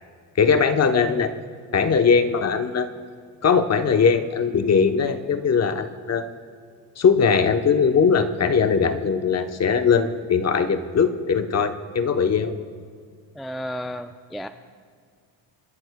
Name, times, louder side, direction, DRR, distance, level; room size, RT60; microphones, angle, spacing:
voice 1, 0.4-1.3 1.7-2.9 3.4-6.3 7.0-12.5, left 6 dB, 35° left, 8 dB, 0.9 m, -20 dB
voice 2, 13.3-14.5, equal, ahead, 8 dB, 0.4 m, -32 dB
28.5 x 11.0 x 2.2 m, 2.1 s
supercardioid pair, 85°, 45 cm